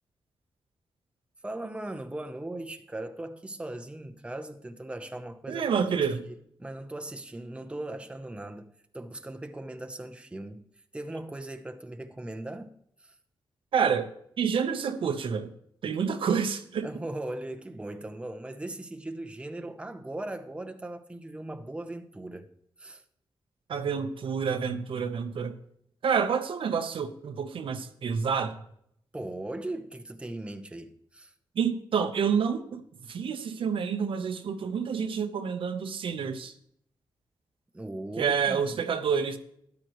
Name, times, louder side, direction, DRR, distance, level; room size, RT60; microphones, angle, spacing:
voice 1, 1.4-5.7 6.0-10.6 10.9-13.1 16.8-22.5 22.8-23.0 29.1-31.3 37.7-38.8, right 1 dB, 10° right, 0.8 m, -39 dB
voice 2, 5.5-6.2 13.7-14.1 14.4-15.5 15.8-16.9 23.7-25.5 26.0-28.5 31.6-32.8 33.1-36.5 38.2-39.4, right 6 dB, 75° right, 1.0 m, -28 dB
13.0 x 10.5 x 3.1 m
wide cardioid pair, 105°, 9 cm